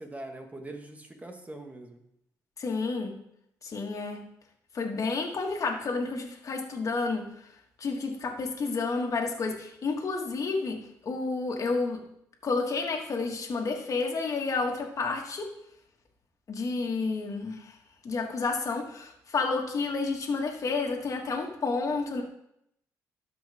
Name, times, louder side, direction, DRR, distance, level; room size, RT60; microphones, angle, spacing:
voice 1, 0.0-2.0, right 2 dB, 20° right, 4 dB, 1.7 m, -42 dB
voice 2, 2.6-3.1 3.6-4.2 4.7-7.3 7.8-10.8 11.0-12.0 12.4-15.5 16.5-17.7 18.0-22.2, left 4 dB, 55° left, 1 dB, 2.0 m, -30 dB
12.5 x 5.4 x 3.6 m, 0.75 s
supercardioid pair, 60°, 7 cm